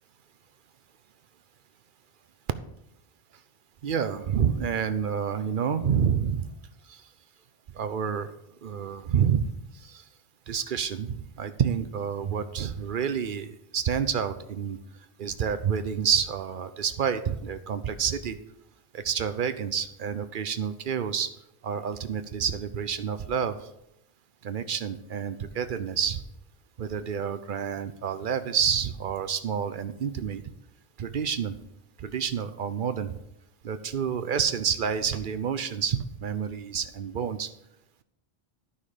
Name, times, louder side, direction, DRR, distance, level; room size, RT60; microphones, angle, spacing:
voice 1, 3.8-6.5 6.9-7.0 7.7-8.3 8.6-9.5 9.8-10.0 10.5-14.8 15.2-18.4 18.9-21.3 21.6-23.6 24.4-26.2 26.8-30.4 31.0-31.6 32.0-33.2 33.6-37.5, right 7 dB, 60° right, 11 dB, 0.7 m, -28 dB
12.0 x 5.6 x 4.9 m, 0.82 s
omnidirectional pair, 1.1 m